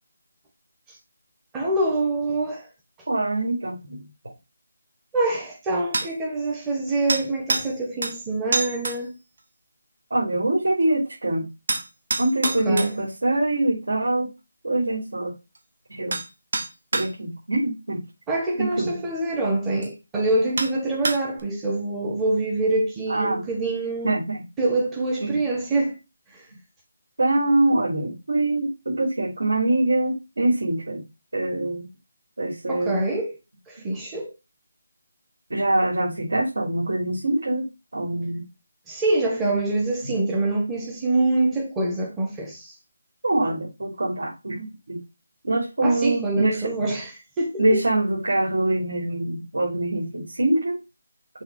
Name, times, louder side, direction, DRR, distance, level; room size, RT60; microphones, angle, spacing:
voice 1, 1.5-2.7 5.1-9.1 12.4-13.0 18.3-24.2 24.6-26.0 26.3-26.4 32.7-33.3 33.7-34.3 38.9-42.7 45.8-47.1 47.4-47.8, right 2 dB, 5° right, 0.8 m, -25 dB
voice 2, 3.1-4.1 10.1-11.5 12.2-14.3 14.6-15.3 15.9-16.2 16.9-18.0 18.6-19.0 23.1-23.4 24.0-24.4 25.2-25.3 27.2-31.0 31.3-31.9 32.4-33.0 35.5-38.5 40.0-40.1 43.2-45.0 45.4-46.9 47.6-50.8, right 2 dB, 80° right, 2.9 m, -24 dB
sound 1, 5.9-6.1 7.1-7.7 8.0-8.2 8.5-9.0 11.7-12.9 15.5-15.6 16.1-16.3 16.5-17.1 18.7-18.8 19.8-19.9 20.6-20.7 21.0-21.4, right 3 dB, 50° right, 1.0 m, -26 dB
6.3 x 2.8 x 5.4 m
figure-of-eight pair, 180°, 0 cm